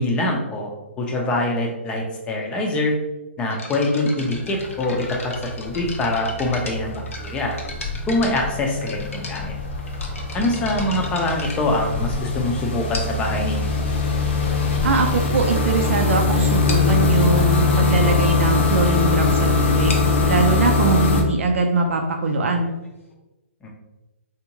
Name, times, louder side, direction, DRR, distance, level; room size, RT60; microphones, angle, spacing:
voice 1, 0.0-2.9 3.4-7.6 8.1-9.5 10.3-13.7 23.6-23.7, left 1 dB, 15° left, 1 dB, 0.5 m, -24 dB
sound 1, 3.5-12.3 12.9-13.4 14.2-14.3 14.9-15.0 15.3-15.5 15.8-15.9 16.2-16.3 16.7-17.0 19.7-23.1, left 3 dB, 85° left, 0.8 m, -37 dB
sound 2, 4.2-4.7 5.0-21.2, left 3 dB, 55° left, 0.7 m, -22 dB
voice 2, 14.8-19.9 20.3-22.7, right 3 dB, 75° right, 3 dB, 0.5 m, -21 dB
3.5 x 2.6 x 2.9 m, 1.0 s
hypercardioid pair, 150°, 7 cm